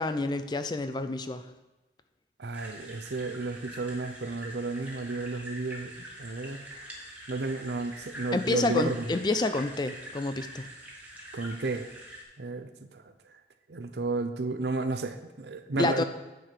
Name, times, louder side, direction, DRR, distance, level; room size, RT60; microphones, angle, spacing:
voice 1, 0.0-1.4 8.3-10.7 15.8-16.0, left 2 dB, 25° left, 10 dB, 0.4 m, -28 dB
voice 2, 2.4-6.6 7.3-9.0 11.3-11.9 12.4-12.7 13.7-16.0, right 3 dB, 70° right, 8 dB, 0.6 m, -32 dB
sound 1, 2.5-12.2, right 1 dB, 10° right, 1.4 m, -45 dB
9.2 x 4.6 x 6.7 m, 1.1 s
head